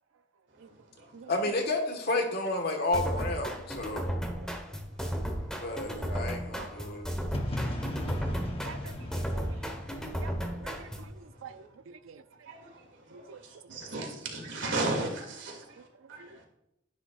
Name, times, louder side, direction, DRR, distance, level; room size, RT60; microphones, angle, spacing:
voice 1, 1.3-4.1 5.6-7.0, left 2 dB, 50° left, 1.5 m, -31 dB
sound 1, 2.9-11.1, equal, 5° left, 1.2 m, -34 dB
sound 2, 7.3-11.2, left 1 dB, 30° left, 1.0 m, -37 dB
voice 2, 8.6-9.6 9.9-12.2 13.1-13.4 13.7-13.8 16.2-16.3, right 5 dB, 90° right, 0.5 m, -48 dB
voice 3, 12.5-12.8 13.1-15.6 16.1-16.4, right 2 dB, 65° right, 2.5 m, -35 dB
10.5 x 10.0 x 2.5 m
head